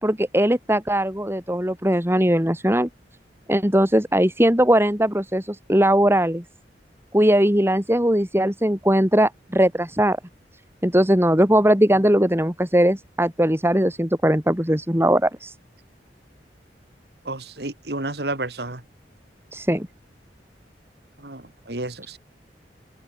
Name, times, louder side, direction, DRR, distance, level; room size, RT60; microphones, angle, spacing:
voice 1, 0.0-2.9 3.5-6.4 7.1-10.2 10.8-15.5 19.5-19.9, right 1 dB, 15° right, 4.4 m, -19 dB
voice 2, 17.3-18.8 21.2-22.2, right 2 dB, 65° right, 2.8 m, -31 dB
open air
head